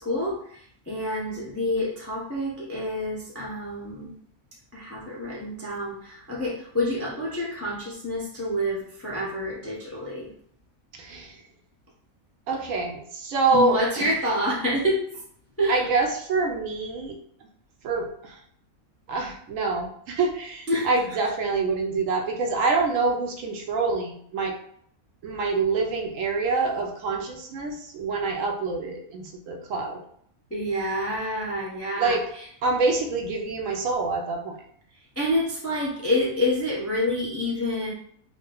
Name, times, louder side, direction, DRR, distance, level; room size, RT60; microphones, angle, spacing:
voice 1, 0.0-4.1 4.7-10.3 13.5-15.0 15.6-15.8 20.7-20.9 30.5-32.4 35.2-37.9, left 1 dB, 20° left, -5 dB, 0.4 m, -28 dB
voice 2, 10.9-11.4 12.5-14.1 15.7-17.2 17.8-18.4 19.1-24.5 25.2-30.0 32.0-32.2 32.6-34.6, right 3 dB, 70° right, 2 dB, 0.9 m, -26 dB
3.7 x 2.2 x 3.7 m, 0.63 s
omnidirectional pair, 1.6 m